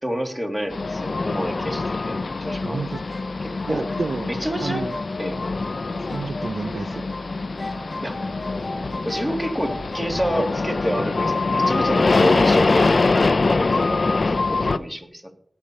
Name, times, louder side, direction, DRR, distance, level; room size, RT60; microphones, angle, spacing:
voice 1, 0.0-2.8 3.4-3.8 4.3-4.9 5.2-5.4 8.0-8.2 9.0-15.3, equal, 10° right, 2 dB, 2.7 m, -28 dB
sound 1, 0.7-14.8, left 3 dB, 65° left, 0.6 m, -23 dB
sound 2, 2.5-7.3 7.6-10.3, left 2 dB, 40° left, 1.2 m, -38 dB
voice 2, 2.6-3.0 3.7-4.3 4.6-5.0 6.1-7.0, right 4 dB, 70° right, 13 dB, 0.5 m, -30 dB
sound 3, 5.3-11.5, right 1 dB, 55° right, 4.7 m, -45 dB
18.0 x 7.0 x 4.3 m, 0.62 s
cardioid pair, 45°, 0 cm